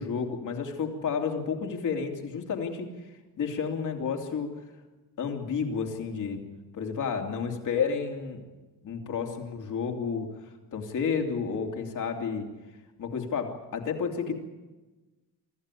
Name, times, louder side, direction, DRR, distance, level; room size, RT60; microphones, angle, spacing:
voice 1, 0.0-2.9 3.4-4.6 5.2-6.4 6.7-8.4 8.8-12.5 13.0-14.3, left 6 dB, 55° left, 3 dB, 3.1 m, -31 dB
25.0 x 15.0 x 9.9 m, 1.2 s
wide cardioid pair, 165°, 36 cm